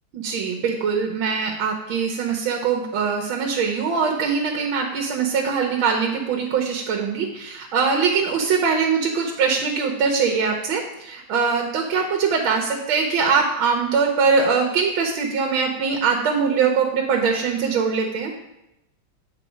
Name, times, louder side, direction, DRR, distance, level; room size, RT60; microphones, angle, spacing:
voice 1, 0.1-18.3, right 5 dB, 80° right, 1 dB, 1.6 m, -22 dB
8.1 x 3.8 x 5.0 m, 0.88 s
omnidirectional pair, 2.2 m